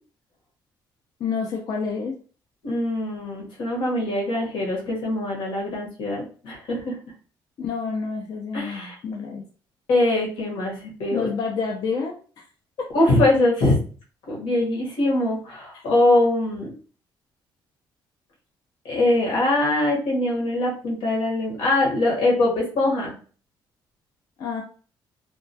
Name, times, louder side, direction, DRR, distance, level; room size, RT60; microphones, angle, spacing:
voice 1, 1.2-2.1 7.6-9.4 11.1-12.2 12.8-13.3 24.4-24.6, left 5 dB, 50° left, 0 dB, 0.4 m, -28 dB
voice 2, 2.6-7.0 8.5-8.9 9.9-11.3 12.9-13.8 14.3-16.7 18.8-23.1, left 2 dB, 80° left, -2 dB, 1.0 m, -22 dB
2.2 x 2.2 x 2.6 m, 0.40 s
cardioid pair, 155°, 9 cm